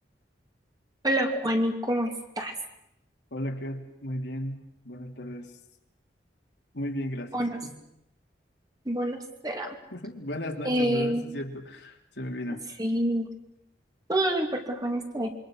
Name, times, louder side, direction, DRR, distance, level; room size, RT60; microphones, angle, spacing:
voice 1, 1.0-2.6 7.3-7.6 8.8-9.8 10.6-11.2 12.8-13.3 14.1-15.3, right 1 dB, 20° right, 3 dB, 2.9 m, -27 dB
voice 2, 3.3-4.6 4.8-5.5 6.7-7.7 9.9-12.6, equal, 70° left, 2 dB, 3.2 m, -35 dB
27.5 x 23.5 x 6.4 m, 0.81 s
head